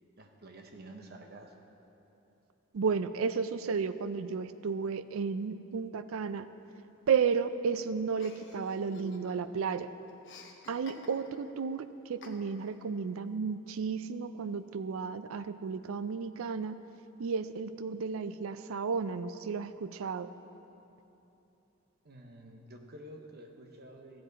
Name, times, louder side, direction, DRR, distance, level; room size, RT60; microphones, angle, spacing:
voice 1, 0.2-1.6 22.0-24.2, right 1 dB, 50° right, 3 dB, 0.9 m, -50 dB
voice 2, 2.7-6.5 7.1-9.9 10.7-16.8 17.2-20.3, right 5 dB, 85° right, 13 dB, 0.4 m, -33 dB
Chuckle chortle, 8.2-9.6 9.8-11.5 12.2-12.8, left 3 dB, 65° left, 1.0 m, -51 dB
14.5 x 7.8 x 4.0 m, 3.0 s
head